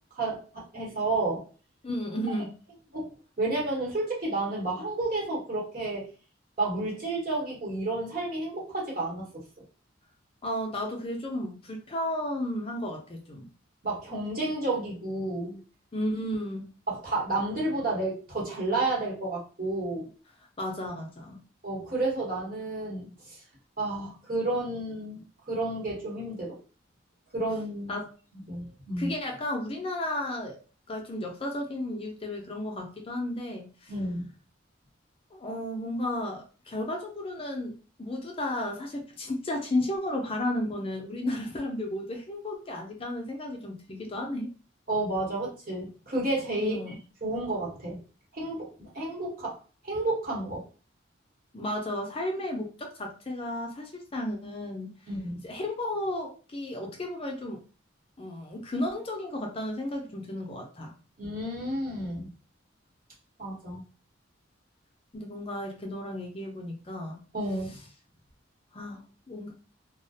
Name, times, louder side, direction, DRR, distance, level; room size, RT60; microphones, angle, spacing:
voice 1, 0.1-1.4 2.9-6.1 6.6-9.4 13.8-15.6 16.9-20.1 21.6-23.4 23.8-26.6 27.3-27.9 28.5-29.1 33.9-34.3 44.9-46.8 47.2-48.0 48.3-49.6 49.8-50.6 55.1-55.4 61.2-62.3 63.4-63.8 67.3-67.8, right 2 dB, 50° right, -4 dB, 1.0 m, -31 dB
voice 2, 1.8-2.5 10.4-13.5 15.9-16.7 20.6-21.4 27.9-28.1 29.0-30.6 30.9-33.9 35.3-44.5 46.6-47.0 51.5-54.9 55.4-57.6 58.2-60.9 65.1-67.2 68.7-69.5, left 1 dB, 30° left, 1 dB, 0.4 m, -33 dB
2.3 x 2.1 x 2.6 m, 0.37 s
head